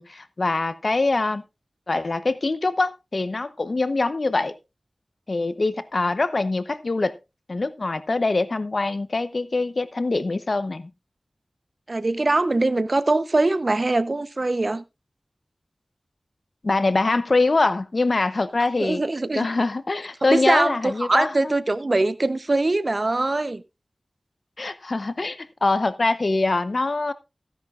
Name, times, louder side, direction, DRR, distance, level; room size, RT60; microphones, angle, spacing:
voice 1, 0.0-1.4 1.9-4.5 5.3-7.2 7.5-10.9 16.6-19.0 19.3-21.5 24.6-27.1, left 3 dB, 65° left, 0.9 m, -23 dB
voice 2, 11.9-14.8 18.8-19.5 20.2-23.6, right 2 dB, 55° right, 0.8 m, -22 dB
15.0 x 10.5 x 2.5 m
cardioid pair, 40°, 0 cm